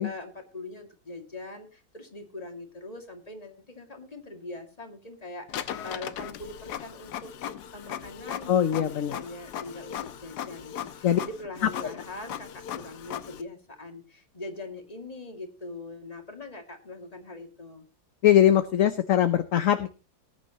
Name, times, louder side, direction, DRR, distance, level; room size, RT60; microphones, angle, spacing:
voice 1, 0.0-17.9, left 2 dB, 25° left, 4 dB, 2.3 m, -42 dB
Printer, 5.5-13.4, left 10 dB, 80° left, 1.4 m, -38 dB
voice 2, 8.5-9.2 11.0-11.2 18.2-19.9, left 11 dB, 60° left, 10 dB, 1.1 m, -21 dB
19.5 x 9.6 x 2.9 m, 0.33 s
omnidirectional pair, 1.8 m